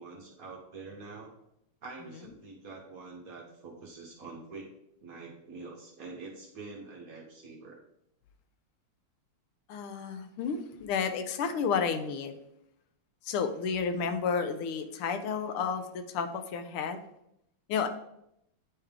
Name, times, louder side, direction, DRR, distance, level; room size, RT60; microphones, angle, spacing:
voice 1, 0.0-1.3 1.8-4.7 5.0-7.8, right 3 dB, 55° right, -1 dB, 1.1 m, -45 dB
voice 2, 9.7-12.3 13.2-17.0 17.7-17.9, left 6 dB, 80° left, 8 dB, 1.5 m, -31 dB
9.6 x 3.5 x 3.5 m, 0.79 s
omnidirectional pair, 2.4 m